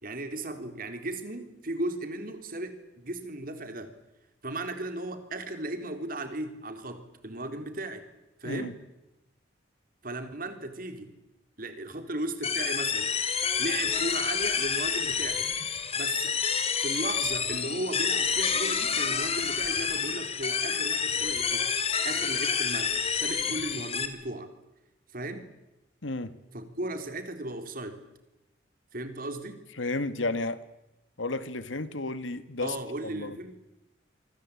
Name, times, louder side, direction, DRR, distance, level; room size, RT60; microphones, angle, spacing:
voice 1, 0.0-3.9 4.4-8.1 8.4-8.7 10.0-11.1 11.6-13.1 13.6-15.5 16.0-16.4 16.8-21.7 22.0-24.5 25.1-25.4 26.5-28.0 28.9-29.6 32.6-33.6, right 2 dB, 50° right, 3.6 m, -36 dB
sound 1, 12.4-24.1, left 6 dB, 30° left, 2.5 m, -28 dB
voice 2, 26.0-26.3 29.8-30.6 31.2-32.8 33.0-33.4, left 2 dB, 85° left, 1.9 m, -32 dB
27.0 x 24.0 x 8.5 m
head